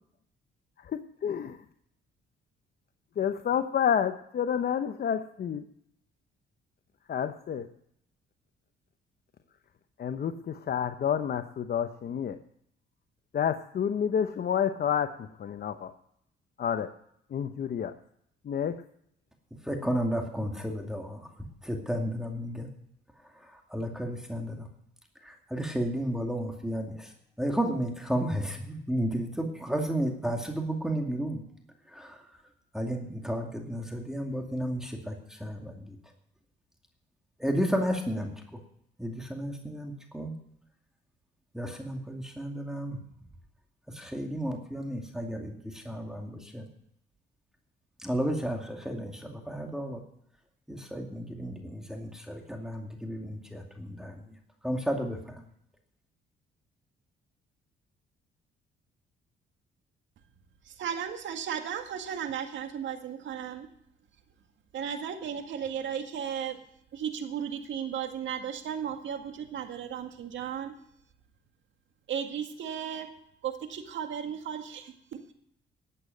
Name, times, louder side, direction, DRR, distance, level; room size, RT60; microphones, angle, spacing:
voice 1, 0.8-1.5 3.2-5.6 7.1-7.7 10.0-12.4 13.3-15.9 16.6-16.9 17.3-17.9 18.4-18.8, left 8 dB, 50° left, 9 dB, 0.9 m, -29 dB
voice 2, 19.6-21.3 21.6-22.7 23.2-24.7 25.2-27.1 27.4-31.4 31.9-32.4 32.7-36.0 37.4-38.5 39.0-40.3 41.5-43.0 43.9-46.7 48.0-50.0 50.7-54.4 54.6-55.4, equal, 5° right, 2 dB, 2.4 m, -33 dB
voice 3, 60.7-63.7 64.7-66.6 66.9-70.7 72.1-73.1 73.4-75.3, right 8 dB, 70° right, 5 dB, 1.9 m, -35 dB
12.5 x 8.4 x 7.8 m, 0.71 s
cardioid pair, 90°, 20 cm